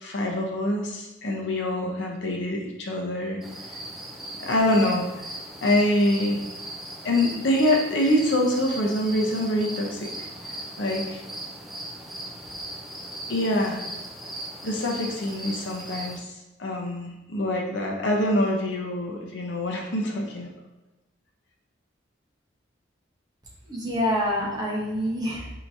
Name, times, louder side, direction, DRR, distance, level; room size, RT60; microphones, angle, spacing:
voice 1, 0.0-3.4 4.4-5.3 5.6-6.4 7.0-10.3 10.8-11.2 13.3-13.8 14.6-16.3 16.6-20.5, left 1 dB, 75° left, 0 dB, 0.7 m, -25 dB
sound 1, 3.4-16.2, right 1 dB, ahead, 0.3 m, -38 dB
voice 2, 23.7-25.5, equal, 20° right, -4 dB, 0.9 m, -26 dB
4.6 x 2.9 x 2.6 m, 1.0 s
head